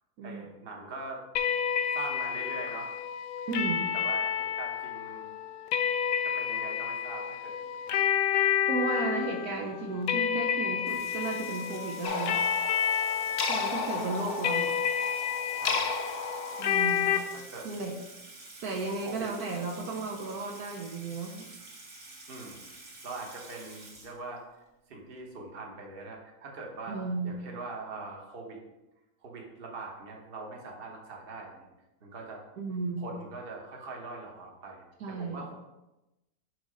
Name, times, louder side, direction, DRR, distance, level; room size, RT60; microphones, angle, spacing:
voice 1, 0.2-1.2 1.9-2.9 3.9-5.3 6.2-7.8 8.4-8.6 13.5-14.2 15.6-16.0 17.3-17.7 19.0-19.3 22.3-22.7 23.0-24.4 24.9-28.6 29.2-31.7 32.0-32.4 33.0-35.5, right 3 dB, 40° right, 0 dB, 1.2 m, -42 dB
sound 1, 1.4-17.2, left 8 dB, 80° left, 1.2 m, -30 dB
voice 2, 3.5-3.9 8.7-12.4 13.4-14.8 16.6-17.2 17.6-18.0 18.6-21.5 26.9-27.3 32.6-33.1 35.0-35.5, right 3 dB, 70° right, 1 dB, 1.2 m, -34 dB
Water tap faucet / Sink (filling or washing), 10.9-24.6, right 2 dB, 55° right, 1.6 m, -49 dB
sound 2, 12.0-17.3, left 4 dB, 55° left, 0.7 m, -34 dB
6.5 x 4.0 x 4.9 m, 0.97 s
omnidirectional pair, 1.8 m